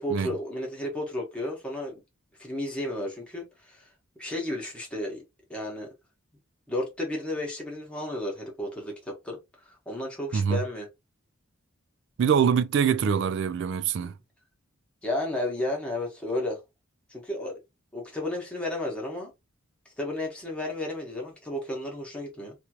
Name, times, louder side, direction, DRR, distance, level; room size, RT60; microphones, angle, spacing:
voice 1, 0.0-2.0 2.4-3.9 4.2-5.2 5.5-5.9 6.7-10.9 14.0-14.1 15.0-16.6 17.1-17.6 17.9-19.3 20.0-22.5, left 1 dB, 5° left, 1.1 m, -33 dB
voice 2, 12.2-14.1, right 7 dB, 55° right, 0.3 m, -24 dB
2.9 x 2.5 x 2.9 m
head